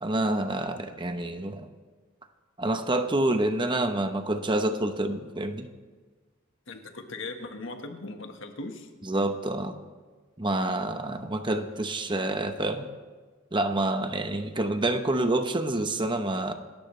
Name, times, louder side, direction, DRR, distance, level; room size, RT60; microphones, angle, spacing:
voice 1, 0.0-1.7 2.6-5.7 9.1-9.8 10.4-12.9 13.5-16.5, right 2 dB, 25° right, 7 dB, 0.9 m, -27 dB
voice 2, 6.7-8.9, left 2 dB, 60° left, 5 dB, 1.5 m, -39 dB
28.0 x 13.5 x 3.3 m, 1.4 s
head